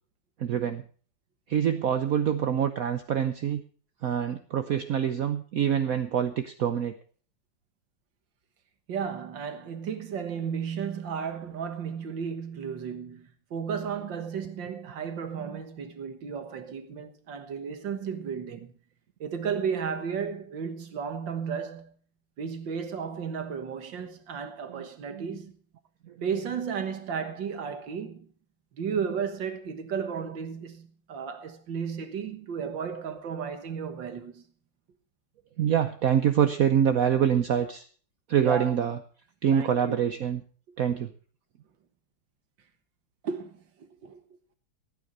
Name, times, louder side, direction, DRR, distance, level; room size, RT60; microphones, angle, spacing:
voice 1, 0.4-0.8 1.5-3.6 4.0-6.9 24.7-25.3 35.6-37.8 38.3-39.0 39.4-40.4 40.8-41.1, right 9 dB, 60° right, 1.1 m, -25 dB
voice 2, 8.9-18.7 19.2-22.0 22.4-25.6 26.2-28.3 28.7-34.4 38.4-38.7 39.5-40.0 43.2-43.6 44.0-44.2, right 6 dB, 80° right, 2.1 m, -34 dB
15.0 x 9.4 x 5.4 m
omnidirectional pair, 2.0 m